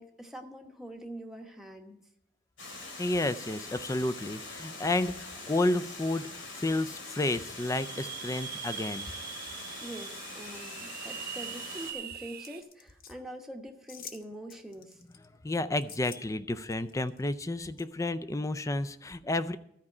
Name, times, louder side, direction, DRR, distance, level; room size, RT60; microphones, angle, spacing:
voice 1, 0.0-2.0 9.8-15.0, right 1 dB, ahead, 2 dB, 1.0 m, -44 dB
Water, 2.6-11.9, left 3 dB, 75° left, 2.6 m, -43 dB
voice 2, 3.0-9.1 15.4-19.6, left 2 dB, 15° left, 14 dB, 0.4 m, -31 dB
sound 1, 7.3-12.6, right 9 dB, 55° right, 0.7 m, -42 dB
sound 2, 12.4-13.1 13.9-14.2 14.5-15.3 15.8-16.2 16.6-17.3 17.8-17.9, left 7 dB, 50° left, 0.8 m, -48 dB
13.5 x 4.9 x 8.5 m, 0.76 s
head